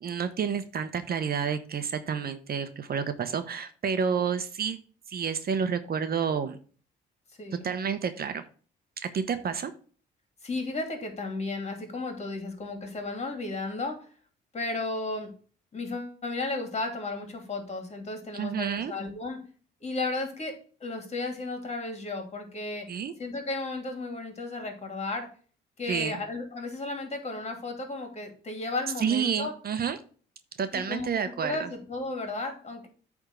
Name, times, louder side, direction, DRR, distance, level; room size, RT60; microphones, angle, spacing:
voice 1, 0.0-4.8 5.1-6.6 7.6-8.4 9.0-9.7 18.3-18.9 22.9-23.1 25.9-26.2 29.0-30.0 30.6-31.7, right 7 dB, 50° right, 10 dB, 0.9 m, -29 dB
voice 2, 7.4-7.7 10.4-14.1 14.5-15.3 15.7-19.4 19.8-22.9 23.2-25.3 25.8-29.5 30.7-31.1 31.4-32.9, left 2 dB, 35° left, 4 dB, 2.8 m, -34 dB
8.8 x 3.6 x 6.6 m, 0.41 s
cardioid pair, 90°, 20 cm